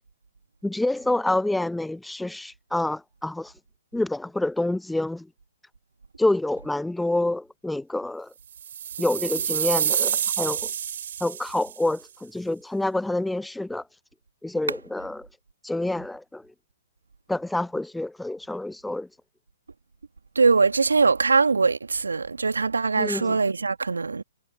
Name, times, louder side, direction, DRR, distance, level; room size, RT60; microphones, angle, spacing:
voice 1, 0.6-3.5 3.9-5.3 6.2-8.3 9.0-10.7 11.2-13.8 14.4-15.3 15.6-16.4 17.3-19.1 23.0-23.4, left 2 dB, 5° left, 0.7 m, -27 dB
sound 1, 8.6-11.8, right 9 dB, 60° right, 3.5 m, -27 dB
voice 2, 20.4-24.2, right 4 dB, 80° right, 1.9 m, -22 dB
figure-of-eight pair, 120°, 0 cm